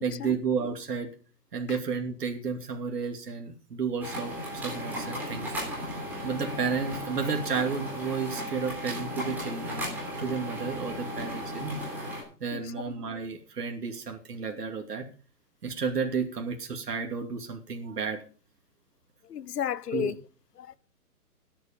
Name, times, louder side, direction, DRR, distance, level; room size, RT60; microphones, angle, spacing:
voice 1, 0.0-1.1 1.5-5.5 6.2-11.8 12.4-15.0 15.6-18.2 19.9-20.1, right 5 dB, 85° right, 2.8 m, -32 dB
sound 1, 4.0-12.2, equal, 5° right, 3.7 m, -35 dB
voice 2, 19.2-20.1 20.6-20.8, left 9 dB, 80° left, 0.9 m, -33 dB
13.0 x 10.5 x 5.2 m
hypercardioid pair, 170°, 47 cm